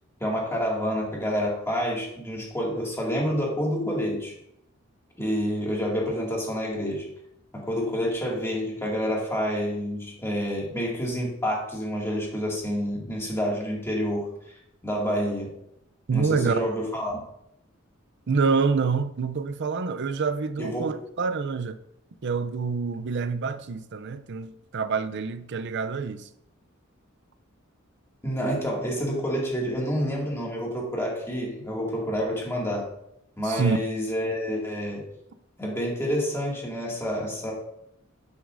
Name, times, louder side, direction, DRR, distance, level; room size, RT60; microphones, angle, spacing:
voice 1, 0.2-4.3 5.2-7.1 7.5-14.5 14.8-15.5 16.1-17.2 20.6-20.9 28.2-32.9 33.4-35.1 35.6-37.5, equal, 15° left, 2.2 m, -28 dB
voice 2, 16.1-16.7 18.3-21.8 22.2-26.3 33.4-33.8, right 5 dB, 60° right, 0.5 m, -27 dB
9.4 x 8.0 x 2.6 m
head